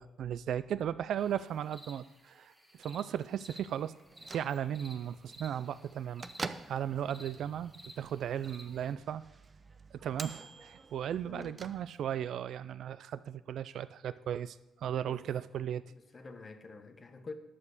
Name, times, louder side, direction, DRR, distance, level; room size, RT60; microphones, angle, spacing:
voice 1, 0.0-2.5 2.8-3.9 4.3-6.2 6.7-9.2 9.9-15.8, right 9 dB, 70° right, 0.4 m, -36 dB
sound 1, 1.2-8.9, equal, 10° right, 2.0 m, -55 dB
Bell / Microwave oven, 4.0-12.3, right 4 dB, 35° right, 0.7 m, -48 dB
voice 2, 11.3-11.6 15.0-15.2 15.9-17.3, left 4 dB, 35° left, 1.3 m, -47 dB
11.0 x 7.5 x 6.6 m
cardioid pair, 90°, 0 cm